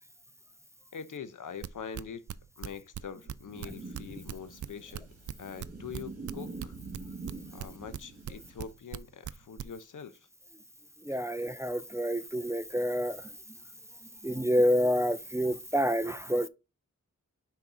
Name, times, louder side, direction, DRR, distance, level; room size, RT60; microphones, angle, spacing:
voice 1, 0.9-2.2 2.6-5.1 5.4-6.7 7.5-10.2 11.3-11.4, left 6 dB, 85° left, 0.7 m, -43 dB
sound 1, 1.6-7.3 7.6-9.0 9.2-9.6, right 10 dB, 70° right, 0.5 m, -38 dB
sound 2, 3.5-8.7, right 3 dB, 50° right, 1.5 m, -45 dB
voice 2, 11.0-13.3 14.2-16.5, equal, 10° right, 0.4 m, -28 dB
6.0 x 4.3 x 3.8 m
wide cardioid pair, 70°, 30 cm